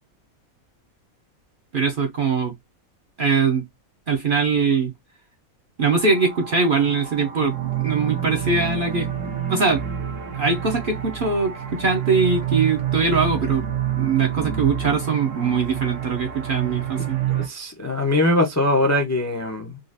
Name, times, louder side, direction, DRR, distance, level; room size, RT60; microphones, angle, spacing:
voice 1, 1.7-2.5 3.2-3.6 4.1-4.9 5.8-9.1 9.5-9.8 10.3-13.7 14.0-17.2, right 4 dB, 50° right, 0.7 m, -22 dB
sound 1, 5.8-17.5, right 10 dB, 65° right, 1.2 m, -28 dB
voice 2, 17.0-19.8, left 1 dB, 20° left, 0.4 m, -22 dB
3.9 x 2.4 x 2.5 m
omnidirectional pair, 1.5 m